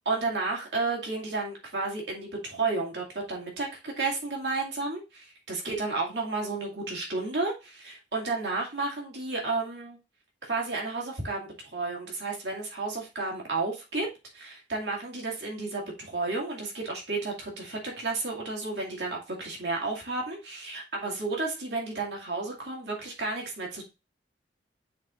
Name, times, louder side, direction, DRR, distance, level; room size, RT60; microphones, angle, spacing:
voice 1, 0.1-10.0 10.4-14.1 14.3-23.8, right 3 dB, 70° right, -2 dB, 2.2 m, -32 dB
9.2 x 4.3 x 2.5 m, 0.27 s
head